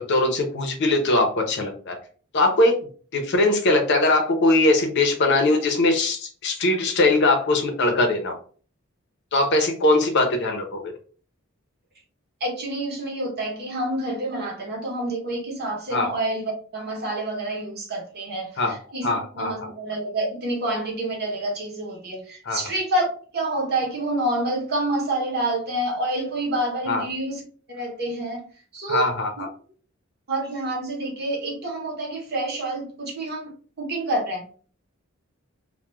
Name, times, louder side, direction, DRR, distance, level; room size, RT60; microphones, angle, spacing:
voice 1, 0.0-2.0 2.3-2.8 3.1-8.4 9.3-10.9 15.9-16.1 18.6-18.8 19.0-19.7 22.5-22.6 26.9-27.0 28.9-29.5, left 2 dB, 55° left, 4 dB, 0.6 m, -21 dB
voice 2, 12.4-27.4 27.7-28.4 28.7-29.1 29.4-29.5 30.3-34.6, right 1 dB, 50° right, 0 dB, 0.9 m, -28 dB
2.3 x 2.1 x 3.0 m, 0.42 s
head